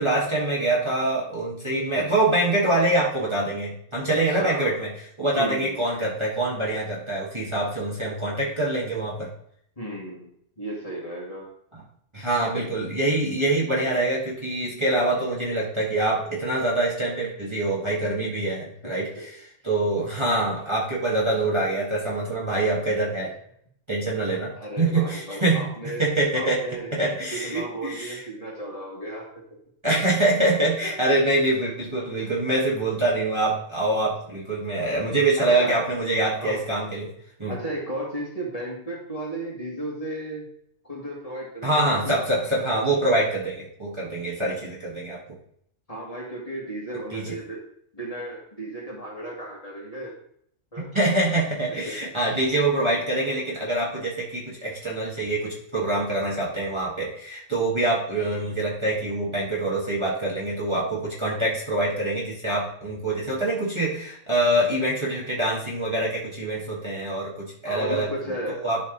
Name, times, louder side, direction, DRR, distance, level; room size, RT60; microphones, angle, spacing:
voice 1, 0.0-4.9 5.2-9.3 12.1-19.3 19.6-23.3 23.9-26.6 26.9-28.2 29.8-37.1 37.4-37.5 41.6-45.2 47.1-47.3 50.8-68.1 68.6-68.8, right 2 dB, 20° right, -6 dB, 1.9 m, -25 dB
voice 2, 4.3-4.7 5.4-5.8 9.8-10.3 10.6-11.5 12.5-13.0 18.8-19.3 24.3-26.0 26.3-26.9 27.3-29.6 32.2-32.3 35.4-35.8 36.4-36.6 37.5-40.4 40.8-42.2 45.9-47.6 47.9-50.1 50.7-50.9 51.7-52.3 67.6-68.6, right 1 dB, 30° left, -4 dB, 2.2 m, -35 dB
11.5 x 4.0 x 4.0 m, 0.68 s
omnidirectional pair, 1.3 m